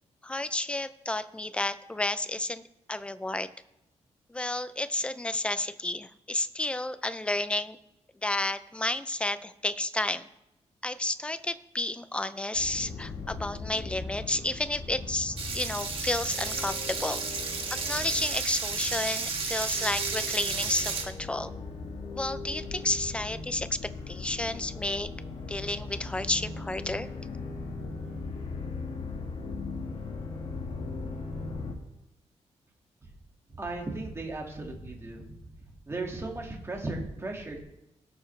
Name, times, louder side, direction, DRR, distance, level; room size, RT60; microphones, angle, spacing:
voice 1, 0.2-2.6 2.9-3.5 4.3-7.8 8.2-10.3 10.8-17.2 17.9-21.5 22.1-23.7 24.1-25.1 25.5-27.1, left 2 dB, 10° left, 13 dB, 0.5 m, -31 dB
sound 1, 12.5-31.8, left 3 dB, 50° left, 1.8 m, -39 dB
sound 2, 15.4-21.0, right 4 dB, 50° right, 1.6 m, -32 dB
voice 2, 33.6-35.4 35.9-37.6, right 2 dB, 20° right, 1 dB, 2.0 m, -36 dB
18.0 x 6.9 x 3.3 m, 0.88 s
wide cardioid pair, 145°, 12 cm